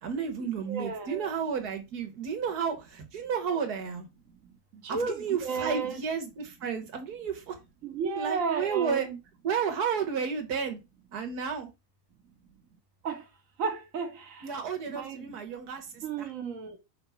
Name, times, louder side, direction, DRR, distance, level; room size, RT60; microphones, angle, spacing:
voice 1, 0.0-4.1 4.9-7.6 8.2-9.1 9.4-10.8 11.1-11.7 14.4-16.3, right 6 dB, 90° right, 1.8 m, -32 dB
voice 2, 0.7-1.3 4.7-6.0 7.8-9.2 13.0-13.2 13.6-14.5 14.9-15.2 16.0-16.8, right 5 dB, 60° right, 1.5 m, -33 dB
5.0 x 3.5 x 5.6 m
omnidirectional pair, 1.6 m